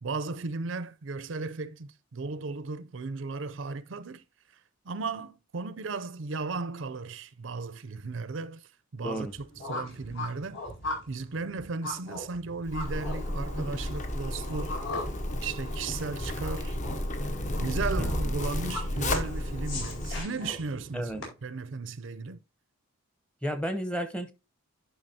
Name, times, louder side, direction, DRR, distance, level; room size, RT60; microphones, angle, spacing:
voice 1, 0.0-4.2 4.8-10.6 11.1-14.9 15.4-16.8 17.6-22.4, right 4 dB, 65° right, 0.5 m, -35 dB
sound 1, 9.1-21.3, left 2 dB, 70° left, 4.7 m, -40 dB
Zipper (clothing), 12.7-20.2, left 1 dB, 35° left, 0.9 m, -32 dB
voice 2, 23.4-24.3, equal, 5° left, 0.8 m, -32 dB
11.0 x 5.6 x 2.8 m
head